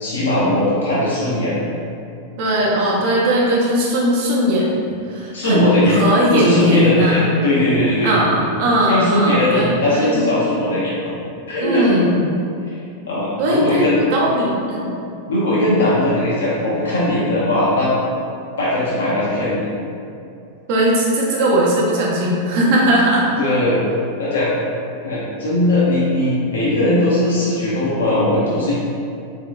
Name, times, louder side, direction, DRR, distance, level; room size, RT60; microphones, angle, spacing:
voice 1, 0.0-1.5 5.3-6.0 6.3-8.2 8.9-11.1 11.5-12.0 12.7-12.8 13.1-14.0 15.3-17.9 18.6-19.7 23.4-23.8 24.2-24.5 25.0-28.7, left 1 dB, 65° left, -8 dB, 0.5 m, -19 dB
voice 2, 2.4-4.7 5.1-7.3 8.0-10.2 11.6-12.1 13.4-14.9 20.7-23.3, equal, 50° right, -3 dB, 0.6 m, -18 dB
3.6 x 2.5 x 2.3 m, 2.5 s
figure-of-eight pair, 90°, 0 cm